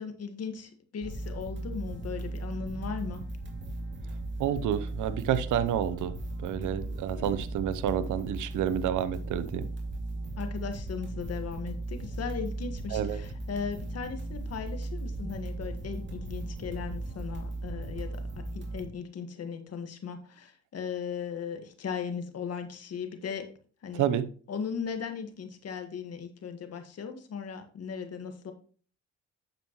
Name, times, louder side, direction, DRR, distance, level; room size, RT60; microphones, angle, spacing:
voice 1, 0.0-3.2 7.2-7.4 10.4-23.5 23.8-24.1 24.5-28.5, left 6 dB, 55° left, 7 dB, 1.7 m, -37 dB
sound 1, 1.0-18.8, right 2 dB, 40° right, 2.4 m, -37 dB
voice 2, 4.4-9.7 12.9-13.2 23.9-24.3, right 10 dB, 80° right, 13 dB, 0.8 m, -29 dB
9.2 x 7.1 x 3.1 m, 0.42 s
cardioid pair, 90°, 30 cm